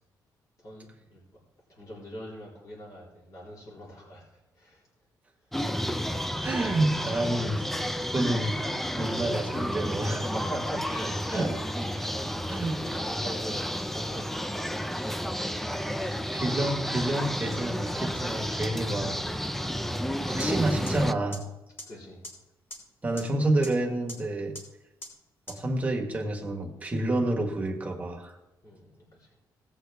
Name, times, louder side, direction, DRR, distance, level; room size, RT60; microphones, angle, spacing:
voice 1, 0.6-1.2 1.7-4.2 4.6-4.8 10.0-11.5 11.9-14.7 21.9-22.2 28.6-29.3, equal, 45° left, -5 dB, 3.7 m, -42 dB
sound 1, 5.5-21.1, equal, 5° left, 0.5 m, -31 dB
voice 2, 6.4-7.6 8.0-8.7 9.0-10.2 11.3-11.5 12.5-13.0 15.7-19.2 20.3-21.4 23.0-24.5 25.5-28.3, right 2 dB, 20° right, 1 dB, 1.6 m, -29 dB
sound 2, 20.4-20.5 20.9-21.0 21.3-21.4 21.8-21.9 22.2-22.3 22.7-22.8 23.2-23.3 23.6-23.7 24.1-24.2 24.5-24.6 25.0-25.1 25.5-25.6, equal, 30° left, 3.5 m, -39 dB
18.0 x 8.0 x 3.5 m, 0.95 s
cardioid pair, 120°, 8 cm